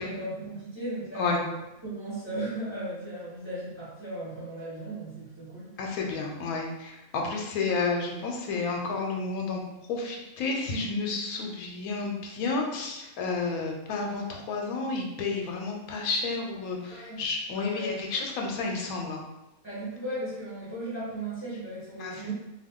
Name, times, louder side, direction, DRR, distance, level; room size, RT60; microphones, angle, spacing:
voice 1, 0.0-5.7 16.9-17.2 17.5-18.0 19.6-22.3, right 1 dB, 10° right, -9 dB, 1.0 m, -36 dB
voice 2, 5.8-9.6 9.9-19.2 22.0-22.1, left 4 dB, 85° left, 0 dB, 1.0 m, -31 dB
2.6 x 2.3 x 3.5 m, 0.96 s
omnidirectional pair, 1.5 m